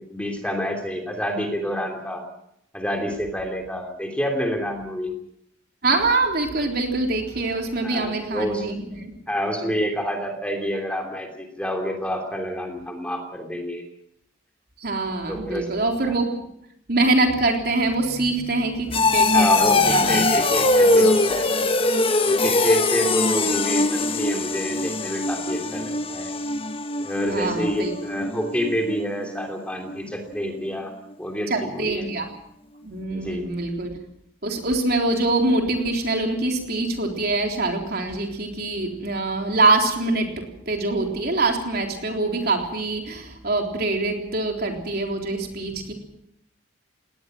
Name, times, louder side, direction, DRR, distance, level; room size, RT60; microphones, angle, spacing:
voice 1, 0.0-2.2 2.7-5.1 7.8-8.7 9.3-13.8 15.3-15.8 16.1-16.2 19.3-21.7 22.2-26.3 27.0-30.9 31.2-32.0 33.1-33.5, equal, 5° left, 3 dB, 3.0 m, -28 dB
voice 2, 5.8-9.2 9.6-9.7 14.8-16.4 16.9-20.3 27.3-27.9 31.5-32.3 32.8-33.9 34.4-45.9, right 2 dB, 50° right, 3 dB, 3.7 m, -24 dB
sound 1, 17.3-30.0 30.3-30.7 31.1-31.2, left 2 dB, 25° left, 1.2 m, -22 dB
20.0 x 19.0 x 7.8 m, 0.75 s
head